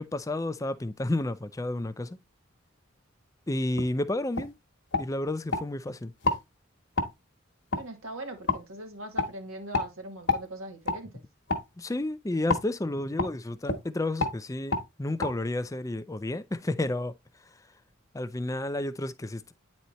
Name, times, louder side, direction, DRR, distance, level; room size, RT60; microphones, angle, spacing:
voice 1, 0.0-2.2 3.5-4.5 5.0-6.1 11.8-17.1 18.1-19.5, left 1 dB, 15° left, 0.4 m, -31 dB
sound 1, 3.8-3.9 4.4-4.5 4.9-5.7 6.2-6.4 7.0-7.1 7.7-7.8 8.5-8.6 9.2-9.3 9.7-9.9 10.3-10.4 10.9-11.0 11.5-11.7 12.5-12.7 13.2-13.3 13.6-13.8 14.2-14.4 14.7-14.9 15.2-15.3, left 3 dB, 60° left, 1.2 m, -28 dB
voice 2, 7.8-11.2, right 1 dB, 90° right, 2.1 m, -41 dB
9.1 x 4.2 x 3.1 m
head